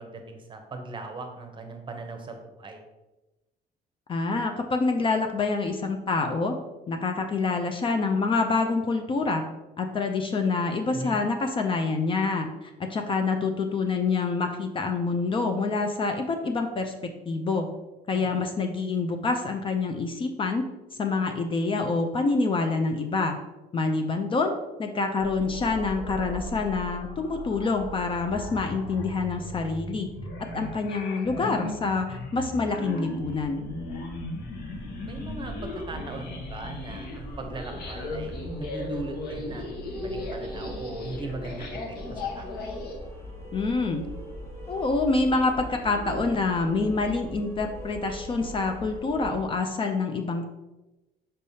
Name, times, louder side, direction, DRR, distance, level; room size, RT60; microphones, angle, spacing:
voice 1, 0.0-2.8 10.9-11.2 18.1-18.4 30.6-30.8 35.1-42.7, right 2 dB, 30° right, 5 dB, 0.7 m, -39 dB
voice 2, 4.1-6.5 6.9-9.4 9.8-17.7 18.1-20.6 21.0-23.4 23.7-30.1 30.5-33.6 43.5-44.0 44.7-50.5, left 3 dB, 30° left, 5 dB, 0.4 m, -26 dB
sound 1, 25.2-43.0, left 2 dB, 65° left, 1.0 m, -37 dB
sound 2, 33.2-49.4, equal, 15° left, 1.2 m, -41 dB
5.4 x 3.3 x 2.7 m, 1.0 s
cardioid pair, 110°, 17 cm